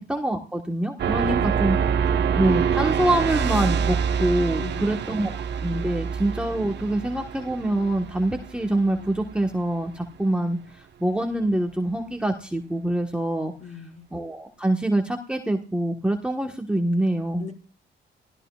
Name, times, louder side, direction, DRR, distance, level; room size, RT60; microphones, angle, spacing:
voice 1, 0.0-1.8 2.4-5.3 5.6-13.5 14.1-17.5, right 1 dB, 5° right, 2 dB, 1.4 m, -25 dB
sound 1, 1.0-9.5, right 7 dB, 60° right, 1.3 m, -26 dB
voice 2, 4.6-5.0 13.6-14.1 17.4-17.5, left 2 dB, 35° left, 4 dB, 5.8 m, -35 dB
28.0 x 16.0 x 2.4 m, 0.36 s
cardioid pair, 90°, 20 cm